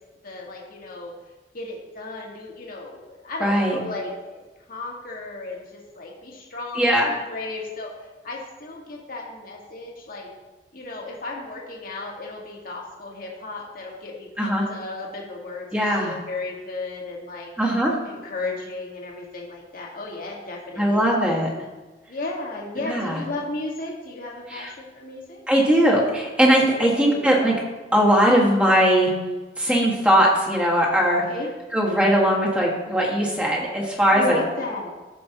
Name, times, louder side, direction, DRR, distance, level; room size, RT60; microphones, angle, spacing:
voice 1, 0.2-1.1 1.5-10.3 10.7-17.5 18.0-21.2 22.1-25.4 26.7-27.4 31.3-31.5 34.1-34.9, left 2 dB, 55° left, -2 dB, 1.7 m, -34 dB
voice 2, 3.4-3.8 6.7-7.1 14.4-14.6 15.7-16.2 17.6-17.9 20.8-21.5 22.8-23.2 24.5-24.7 25.5-27.5 27.9-29.1 29.6-31.2 31.7-34.4, equal, 5° right, -4 dB, 1.8 m, -19 dB
15.0 x 5.3 x 3.0 m, 1.2 s
head